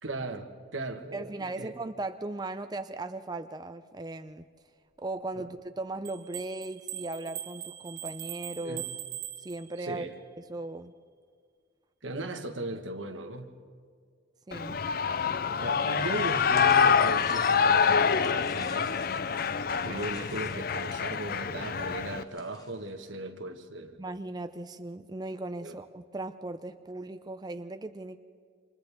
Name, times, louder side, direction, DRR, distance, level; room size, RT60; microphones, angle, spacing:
voice 1, 0.0-1.7 5.3-5.4 8.6-8.9 9.8-10.1 12.0-13.6 15.6-19.0 19.8-24.0 25.6-25.8, right 2 dB, 90° right, 6 dB, 1.6 m, -37 dB
voice 2, 1.1-4.4 5.0-8.9 9.4-10.1 10.4-10.9 14.5-14.8 24.0-28.2, right 2 dB, 20° right, 9 dB, 0.5 m, -37 dB
sound 1, 6.0-10.0, right 12 dB, 50° right, 1.3 m, -41 dB
Shout / Cheering, 14.5-22.2, left 6 dB, 50° left, 0.5 m, -26 dB
sound 2, 16.1-22.9, left 3 dB, 20° left, 1.1 m, -49 dB
28.5 x 26.0 x 3.6 m, 2.1 s
head